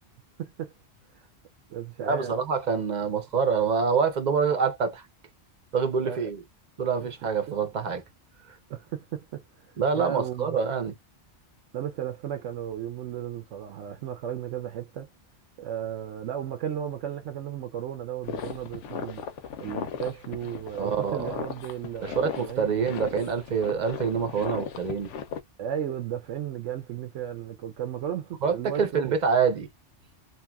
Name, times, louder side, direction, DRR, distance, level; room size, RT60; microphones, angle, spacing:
voice 1, 0.4-0.7 1.1-1.3 1.7-2.4 6.0-6.3 7.0-7.1 7.5-7.6 8.7-9.4 9.9-10.6 11.7-15.1 15.6-19.2 19.6-22.7 25.6-29.2, right 10 dB, 85° right, 1.0 m, -35 dB
voice 2, 2.1-5.0 5.7-6.4 6.8-8.0 9.8-10.9 20.8-21.3 22.0-25.1 28.4-29.7, right 6 dB, 45° right, 0.7 m, -26 dB
sound 1, 18.2-25.4, left 7 dB, 80° left, 0.9 m, -37 dB
2.8 x 2.5 x 2.3 m
omnidirectional pair, 1.2 m